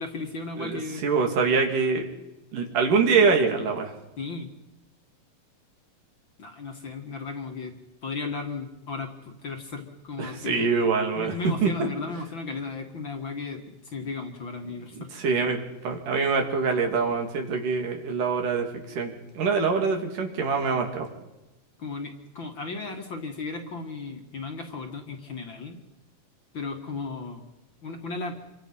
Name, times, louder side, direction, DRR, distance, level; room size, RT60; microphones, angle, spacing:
voice 1, 0.0-1.0 4.2-4.5 6.4-7.7 8.0-10.7 11.1-15.1 21.8-25.8 26.5-27.4 27.8-28.4, left 3 dB, 40° left, 4 dB, 2.3 m, -35 dB
voice 2, 0.6-2.1 2.5-3.9 10.2-11.7 14.9-21.1, right 5 dB, 80° right, 3 dB, 4.4 m, -25 dB
27.5 x 24.0 x 5.8 m, 1.0 s
omnidirectional pair, 3.7 m